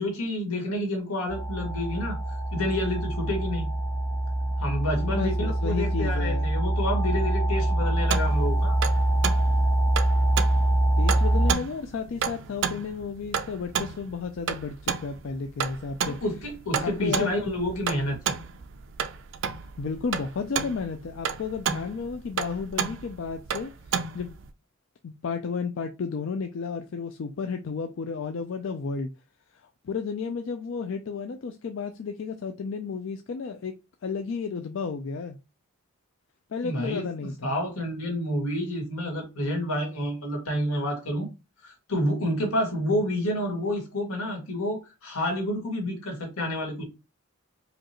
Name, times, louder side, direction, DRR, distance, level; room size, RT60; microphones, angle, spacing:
voice 1, 0.0-3.7 4.6-8.8 16.1-18.4 36.6-41.3 41.6-46.8, left 1 dB, 90° left, 1.8 m, -29 dB
sound 1, 1.3-11.5, right 1 dB, 10° right, 0.6 m, -24 dB
voice 2, 5.0-6.5 11.0-16.2 16.8-17.3 19.8-24.4 25.0-29.1 29.8-33.7 34.0-35.4 36.5-37.5, left 5 dB, 60° left, 0.4 m, -32 dB
sound 2, 8.1-24.5, right 7 dB, 55° right, 0.4 m, -32 dB
5.0 x 2.4 x 2.9 m
head